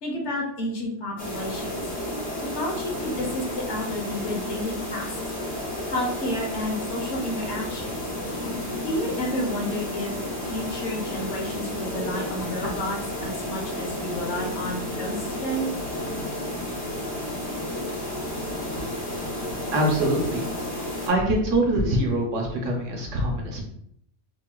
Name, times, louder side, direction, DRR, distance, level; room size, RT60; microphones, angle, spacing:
voice 1, 0.0-1.8 2.4-5.2 5.9-8.0 8.8-10.1 10.4-15.7, left 1 dB, 65° left, -1 dB, 1.1 m, -31 dB
sound 1, 1.2-21.1, left 1 dB, 50° left, 1.8 m, -32 dB
voice 2, 19.7-20.4 21.1-23.6, right 1 dB, 75° right, 1 dB, 1.2 m, -24 dB
3.9 x 2.4 x 2.2 m, 0.68 s
omnidirectional pair, 1.3 m